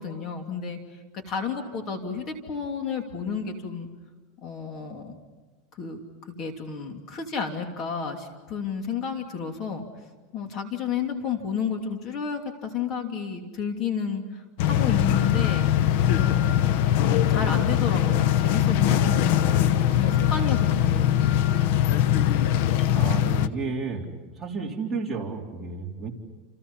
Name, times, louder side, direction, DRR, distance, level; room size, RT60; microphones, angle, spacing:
voice 1, 0.0-3.9 4.4-5.1 5.7-9.8 10.3-15.8 16.1-16.8 17.3-21.3, left 6 dB, 35° left, 4 dB, 2.9 m, -31 dB
sound 1, 14.6-23.5, left 11 dB, 65° left, 0.9 m, -22 dB
voice 2, 22.9-24.1 24.4-26.1, right 4 dB, 10° right, -3 dB, 3.9 m, -31 dB
30.0 x 29.0 x 5.7 m, 1.3 s
supercardioid pair, 150°, 0 cm